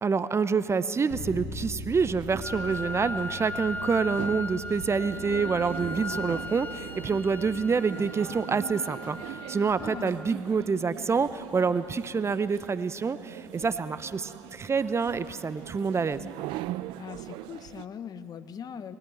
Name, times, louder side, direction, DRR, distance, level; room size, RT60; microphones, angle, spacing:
voice 1, 0.0-16.2, right 5 dB, 30° right, 14 dB, 0.8 m, -27 dB
Bass guitar, 1.1-7.3, left 2 dB, 70° left, 3.9 m, -42 dB
sound 1, 2.0-17.9, right 16 dB, 65° right, 0.4 m, -42 dB
Wind instrument woodwind instrument, 2.4-10.4, left 2 dB, 20° left, 1.0 m, -38 dB
voice 2, 9.8-10.1 17.0-19.0, left 8 dB, 45° left, 13 dB, 0.9 m, -40 dB
20.5 x 14.0 x 9.3 m, 2.6 s
hypercardioid pair, 55°, 9 cm